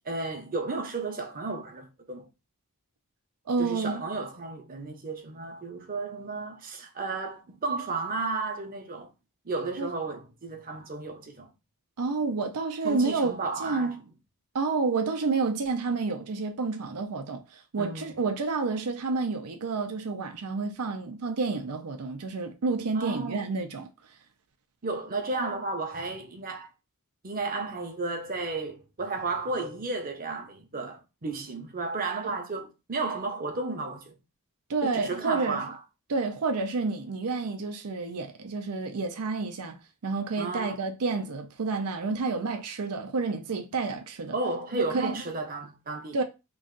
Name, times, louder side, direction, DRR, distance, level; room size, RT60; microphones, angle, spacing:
voice 1, 0.0-2.3 3.6-9.1 9.4-11.5 12.8-13.9 17.8-18.2 22.9-23.4 24.8-26.7 27.2-34.1 34.8-35.8 40.4-40.8 44.3-46.2, right 3 dB, 40° right, 0.8 m, -33 dB
voice 2, 3.5-4.1 9.8-9.9 12.0-13.3 13.6-14.0 14.5-23.9 32.2-32.4 34.7-35.6 36.1-39.8 40.0-44.4 44.7-45.2 46.1-46.2, right 4 dB, 85° right, 0.6 m, -29 dB
3.1 x 2.5 x 3.8 m
head